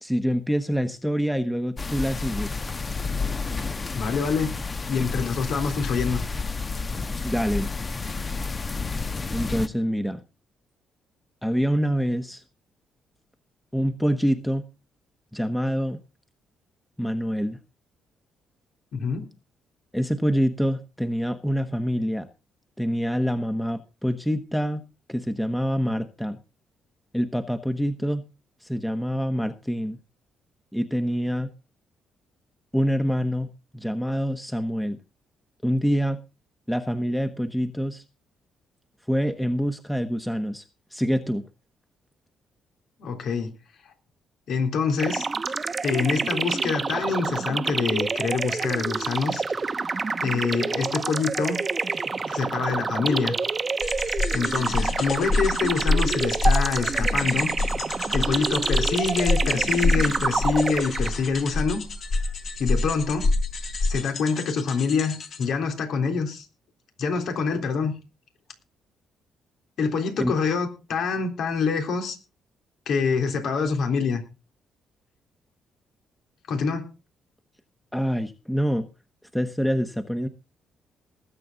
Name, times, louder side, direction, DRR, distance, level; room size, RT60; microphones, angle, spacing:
voice 1, 0.0-2.6 7.2-7.7 9.3-10.2 11.4-12.4 13.7-14.6 15.3-16.0 17.0-17.6 19.9-22.3 22.8-24.8 25.1-26.4 27.1-28.2 28.6-30.0 30.7-31.5 32.7-35.0 35.6-36.2 36.7-38.0 39.1-40.6 40.9-41.4 70.2-70.4 77.9-78.9 79.3-80.3, equal, 5° left, 1.2 m, -26 dB
sound 1, 1.8-9.7, left 4 dB, 30° left, 1.0 m, -30 dB
voice 2, 3.9-4.5 4.9-6.2 18.9-19.3 43.0-43.5 44.5-45.3 45.8-49.4 50.2-51.9 52.3-53.4 54.3-57.5 57.9-61.8 62.6-63.3 63.8-66.5 67.0-67.9 69.8-72.2 72.9-74.2 76.5-76.9, left 5 dB, 70° left, 3.6 m, -26 dB
sound 2, 45.0-61.4, right 4 dB, 30° right, 0.9 m, -28 dB
sound 3, 53.8-65.5, left 2 dB, 55° left, 3.4 m, -27 dB
20.0 x 8.5 x 4.0 m
cardioid pair, 90°, 0 cm